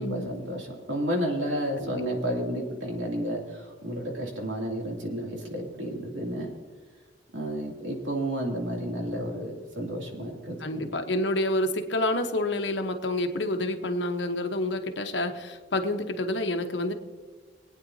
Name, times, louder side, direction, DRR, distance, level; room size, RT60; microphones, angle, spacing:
voice 1, 0.0-6.5 7.3-10.9, equal, 85° right, -1 dB, 2.7 m, -31 dB
voice 2, 10.6-16.9, left 1 dB, 70° left, 6 dB, 1.1 m, -28 dB
23.5 x 9.2 x 2.8 m, 1.5 s
head